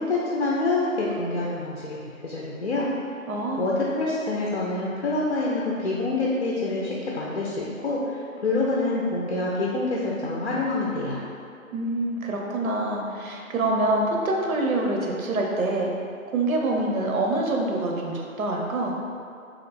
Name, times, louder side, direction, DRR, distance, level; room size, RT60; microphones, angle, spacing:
voice 1, 0.0-2.9 3.6-11.2, left 2 dB, 50° left, -4 dB, 0.5 m, -26 dB
voice 2, 3.3-3.8 11.7-15.9 16.3-18.9, right 2 dB, 80° right, 0 dB, 0.9 m, -26 dB
3.0 x 3.0 x 4.1 m, 2.4 s
hypercardioid pair, 170°, 41 cm